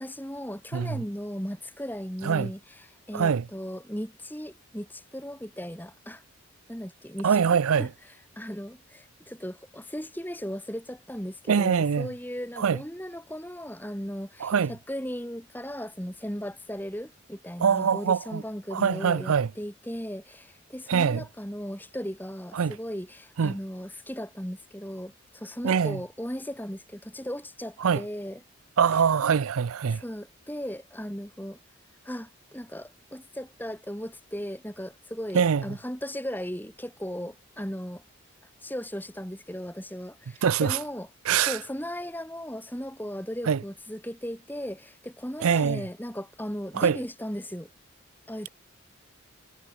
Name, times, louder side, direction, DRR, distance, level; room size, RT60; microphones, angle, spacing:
voice 1, 0.0-6.2 6.7-7.9 8.4-28.4 29.9-31.6 32.0-38.0 38.6-41.1 41.4-47.7 48.3-48.5, equal, 10° left, 6.5 m, -37 dB
voice 2, 0.7-1.0 2.2-2.5 3.1-3.5 7.2-7.9 11.5-12.1 12.6-12.8 14.4-14.7 17.6-18.4 18.7-19.5 20.9-21.2 22.5-22.7 23.4-23.5 25.6-26.0 27.8-28.0 28.8-30.0 35.3-35.6 40.4-40.8 41.3-41.6 43.5-43.6 45.4-45.8 46.7-47.0, right 7 dB, 80° right, 0.5 m, -23 dB
head